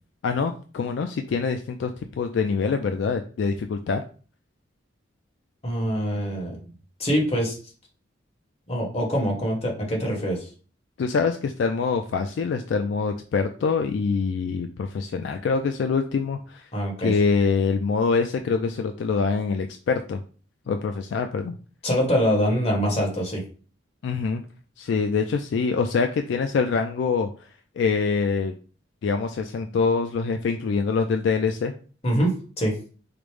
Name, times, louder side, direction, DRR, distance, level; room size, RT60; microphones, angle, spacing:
voice 1, 0.2-1.9 2.2-4.0 11.0-16.7 17.0-20.2 20.7-21.6 24.0-24.4 24.8-27.3 27.8-28.5 29.0-31.7, left 5 dB, 65° left, 6 dB, 0.3 m, -24 dB
voice 2, 5.6-6.6 7.0-7.6 8.7-10.5 16.7-17.1 21.8-23.4 32.0-32.7, equal, 35° left, -1 dB, 1.2 m, -24 dB
4.9 x 2.0 x 3.1 m, 0.39 s
head